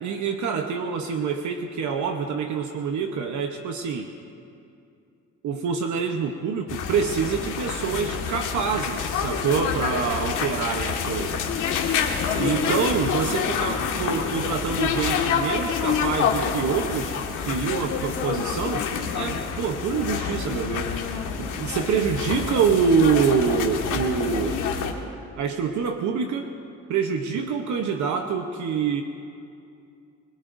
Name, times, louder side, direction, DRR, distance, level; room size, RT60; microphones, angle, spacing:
voice 1, 0.0-4.1 5.4-11.4 12.4-18.8 19.1-20.9 21.4-24.6 25.4-26.5 26.9-29.0, right 6 dB, 70° right, 4 dB, 1.0 m, -26 dB
sound 1, 6.7-24.9, left 6 dB, 90° left, 1.8 m, -27 dB
25.5 x 21.0 x 2.6 m, 2.6 s
cardioid pair, 90°, 30 cm